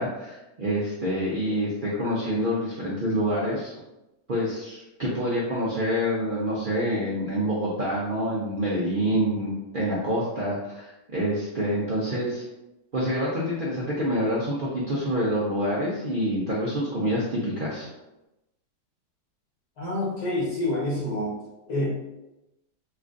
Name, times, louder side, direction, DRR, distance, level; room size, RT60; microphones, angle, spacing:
voice 1, 0.0-3.7 4.3-12.4 12.9-17.9, equal, 65° right, -6 dB, 0.5 m, -27 dB
voice 2, 19.8-21.3 21.7-21.9, left 1 dB, 90° left, -5 dB, 1.8 m, -27 dB
4.3 x 2.4 x 2.5 m, 0.95 s
omnidirectional pair, 1.7 m